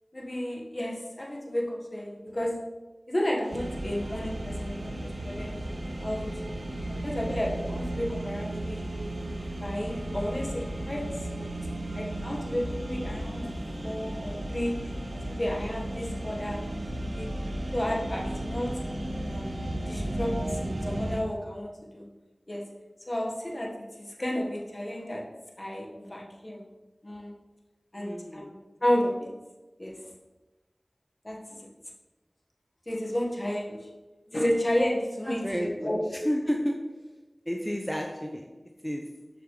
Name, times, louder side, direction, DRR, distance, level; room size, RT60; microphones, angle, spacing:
voice 1, 0.1-2.6 3.1-5.5 6.0-6.3 6.9-8.9 9.6-11.5 11.9-13.5 13.8-14.8 15.1-17.3 17.7-18.8 19.3-22.1 22.5-22.6 23.1-23.7 24.0-25.2 25.6-26.6 27.0-27.3 27.9-29.3 29.8-30.1 31.2-31.7 32.9-33.9 34.3-36.0, left 1 dB, 40° left, -2 dB, 1.5 m, -32 dB
sound 1, 3.5-21.2, right 1 dB, 70° right, 1.0 m, -34 dB
voice 2, 28.0-28.5 35.3-35.9 36.2-36.9 37.5-38.4 38.8-39.1, equal, 5° left, 1 dB, 0.6 m, -31 dB
7.0 x 5.8 x 3.2 m, 1.2 s
wide cardioid pair, 45°, 0 cm